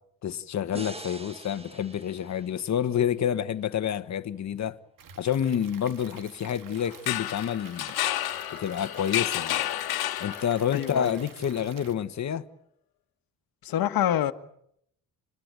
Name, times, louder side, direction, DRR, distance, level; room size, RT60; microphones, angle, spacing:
voice 1, 0.2-4.8 5.2-8.0 8.5-9.6 10.2-12.4, left 9 dB, 50° left, 1.4 m, -28 dB
sound 1, 0.7-3.9, right 2 dB, 15° right, 1.6 m, -45 dB
Stream / Liquid, 5.0-11.9, right 7 dB, 60° right, 1.9 m, -49 dB
sound 2, 6.9-10.8, left 13 dB, 85° left, 1.6 m, -30 dB
voice 2, 10.7-11.2 13.6-14.3, left 11 dB, 70° left, 1.6 m, -26 dB
29.5 x 21.5 x 9.1 m
cardioid pair, 130°, 36 cm